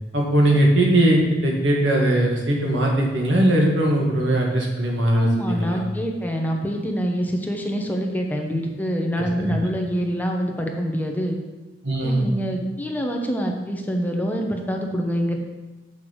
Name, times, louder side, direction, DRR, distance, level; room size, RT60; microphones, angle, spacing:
voice 1, 0.1-5.8 9.4-9.5 11.8-12.3, right 1 dB, 85° right, -1 dB, 1.8 m, -20 dB
voice 2, 5.1-11.4 12.0-15.4, equal, 10° left, 2 dB, 0.8 m, -25 dB
8.0 x 5.8 x 4.6 m, 1.2 s
head